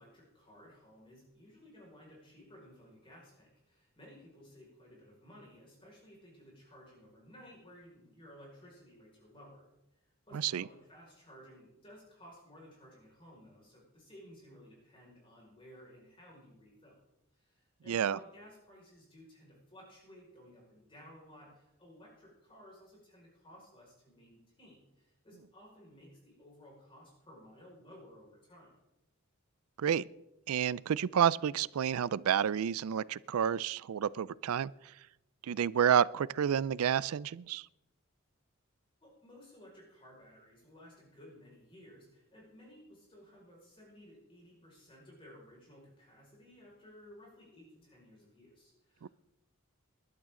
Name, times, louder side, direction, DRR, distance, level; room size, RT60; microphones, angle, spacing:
voice 1, 0.0-9.7 10.0-17.0 17.3-28.7 39.0-49.1, equal, 25° left, 5.2 m, -56 dB
voice 2, 10.3-10.6 17.9-18.2 29.8-30.1 30.5-34.7 35.5-37.6 49.0-49.1, right 8 dB, 85° right, 0.4 m, -30 dB
21.0 x 12.0 x 3.8 m
head